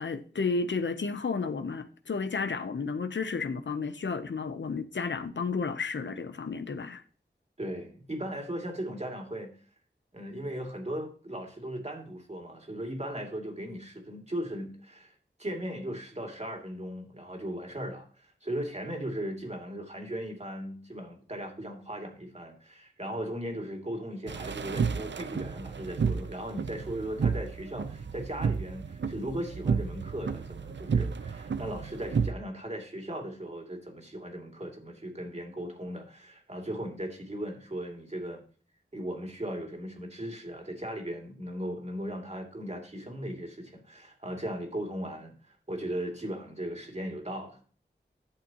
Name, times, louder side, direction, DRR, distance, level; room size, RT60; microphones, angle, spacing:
voice 1, 0.0-7.0, left 4 dB, 80° left, 0.7 m, -32 dB
voice 2, 7.6-9.5 10.1-38.4 38.9-47.6, right 1 dB, 35° right, 2.5 m, -37 dB
sound 1, 24.3-32.3, right 5 dB, 75° right, 0.5 m, -31 dB
11.5 x 7.2 x 2.9 m
wide cardioid pair, 65°, 19 cm